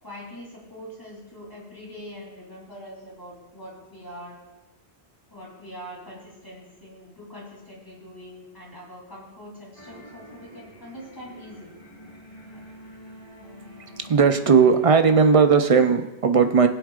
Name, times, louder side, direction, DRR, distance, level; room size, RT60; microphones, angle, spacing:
voice 1, 0.0-4.4 5.3-11.7 12.5-12.6, equal, 20° left, -5 dB, 3.3 m, -43 dB
sound 1, 9.7-15.7, equal, 35° left, 2.0 m, -46 dB
voice 2, 14.0-16.7, right 5 dB, 40° right, 7 dB, 0.6 m, -17 dB
20.5 x 7.9 x 2.5 m, 1.1 s
omnidirectional pair, 1.1 m